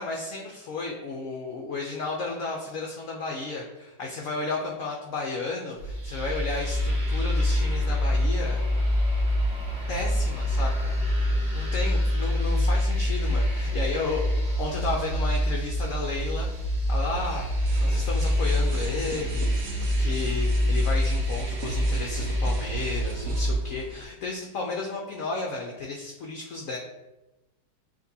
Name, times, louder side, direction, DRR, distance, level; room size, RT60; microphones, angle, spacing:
voice 1, 0.0-8.6 9.9-11.0 11.5-14.2 14.6-16.5 16.9-17.5 17.8-26.8, left 3 dB, 70° left, 0 dB, 0.7 m, -33 dB
sound 1, 5.8-23.5, left 1 dB, 80° right, 1.6 m, -26 dB
sound 2, 17.7-24.1, right 3 dB, 65° right, 1.0 m, -43 dB
7.7 x 2.6 x 2.7 m, 1.0 s
omnidirectional pair, 2.0 m